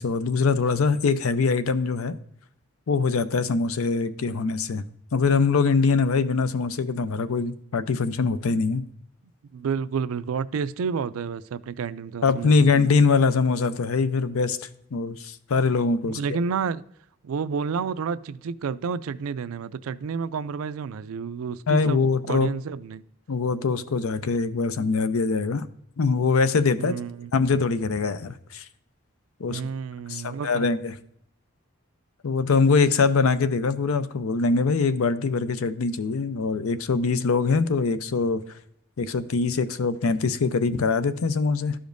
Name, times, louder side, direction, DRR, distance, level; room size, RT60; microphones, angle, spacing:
voice 1, 0.0-2.1 2.9-4.8 5.1-8.8 12.2-16.2 21.7-22.5 23.3-25.7 26.0-26.9 27.3-28.6 29.4-29.6 30.1-30.9 32.2-38.4 39.0-41.8, left 4 dB, 85° left, 0.5 m, -23 dB
voice 2, 9.5-12.7 14.9-15.1 16.0-16.8 17.2-23.0 26.8-27.3 29.5-30.7, right 6 dB, 80° right, 0.4 m, -30 dB
12.5 x 5.1 x 2.6 m
head